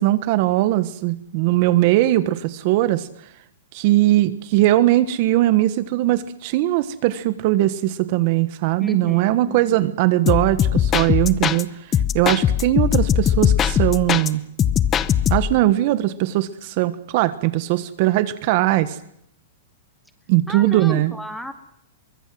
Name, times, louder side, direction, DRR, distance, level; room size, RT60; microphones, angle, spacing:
voice 1, 0.0-3.1 3.7-14.4 15.3-19.0 20.3-21.1, right 15 dB, 40° right, 14 dB, 1.3 m, -20 dB
voice 2, 8.8-10.0 20.5-21.5, equal, ahead, 8 dB, 2.2 m, -33 dB
sound 1, 10.3-11.6 11.9-14.3 14.6-15.6, left 9 dB, 20° left, 0.9 m, -20 dB
24.0 x 21.5 x 7.9 m, 0.72 s
hypercardioid pair, 160°, 0 cm